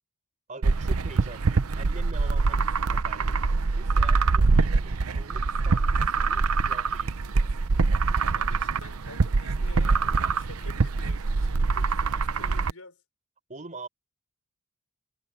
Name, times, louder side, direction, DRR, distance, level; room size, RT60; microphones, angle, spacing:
voice 1, 0.5-3.4 3.7-7.5 10.2-10.4 13.5-13.9, right 3 dB, 35° right, 3.9 m, -44 dB
sound 1, 0.6-12.7, right 4 dB, 90° right, 0.7 m, -24 dB
voice 2, 8.3-13.0, left 3 dB, 80° left, 4.9 m, -49 dB
head